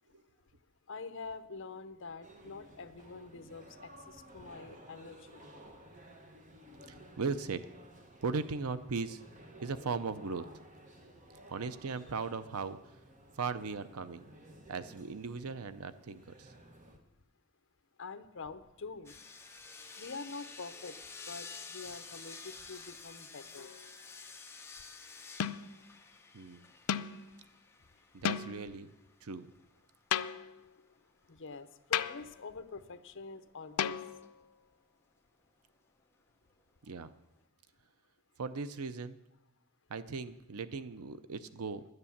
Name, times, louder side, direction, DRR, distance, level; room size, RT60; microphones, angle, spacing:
voice 1, 0.9-5.4 18.0-19.2 20.0-20.9 21.3-23.7 31.3-34.0, left 4 dB, 60° left, 10 dB, 0.7 m, -45 dB
sound 1, 2.2-17.0, right 1 dB, 35° right, 1.3 m, -55 dB
voice 2, 6.9-7.7 8.2-9.2 9.6-10.5 11.5-12.8 13.4-14.2 14.7-16.5 26.3-26.7 28.1-28.9 29.2-29.5 36.8-37.1 38.4-39.2 39.9-41.9, right 4 dB, 80° right, 13 dB, 0.6 m, -38 dB
sound 2, 19.0-30.4 33.8-34.3 35.4-35.5, left 4 dB, 10° left, 0.8 m, -50 dB
sound 3, 23.6-24.0 25.4-25.8 26.9-27.2 28.2-28.7 30.1-30.7 31.9-32.4 33.8-34.4, left 9 dB, 85° left, 0.4 m, -35 dB
11.0 x 9.7 x 7.2 m, 0.95 s
head